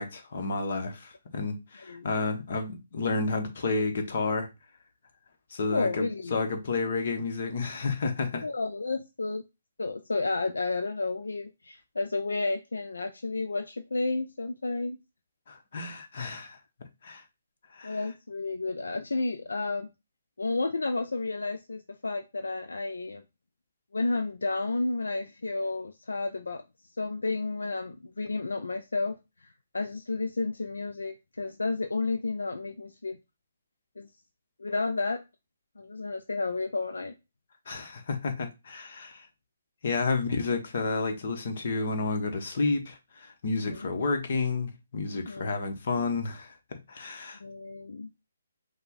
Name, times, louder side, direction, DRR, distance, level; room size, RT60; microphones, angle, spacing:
voice 1, 0.0-4.5 5.5-8.4 15.5-16.6 17.0-17.2 17.7-18.0 37.7-39.3 39.8-46.6 46.9-47.4, left 3 dB, 55° left, 1.2 m, -31 dB
voice 2, 5.7-6.4 8.4-9.4 9.8-15.0 17.8-19.9 20.4-23.2 23.9-26.6 27.0-33.2 34.0-34.1 34.6-35.2 35.8-37.1 43.6-43.8 45.1-45.5 47.4-48.1, left 3 dB, 85° left, 0.5 m, -31 dB
5.4 x 2.4 x 4.0 m
hypercardioid pair, 145°, 0 cm